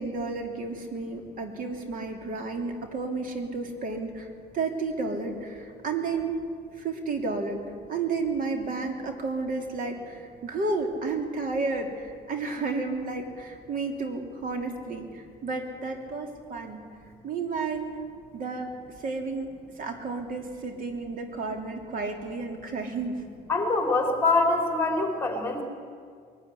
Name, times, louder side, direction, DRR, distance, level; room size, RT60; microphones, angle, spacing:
voice 1, 0.0-4.3 4.5-6.4 6.8-7.6 7.9-16.8 17.2-17.9 18.3-18.8 19.0-23.2, right 3 dB, 55° right, 4 dB, 3.2 m, -32 dB
voice 2, 23.5-25.6, left 3 dB, 15° left, 2 dB, 3.5 m, -24 dB
21.5 x 13.0 x 9.9 m, 2.1 s
cardioid pair, 110°, 17 cm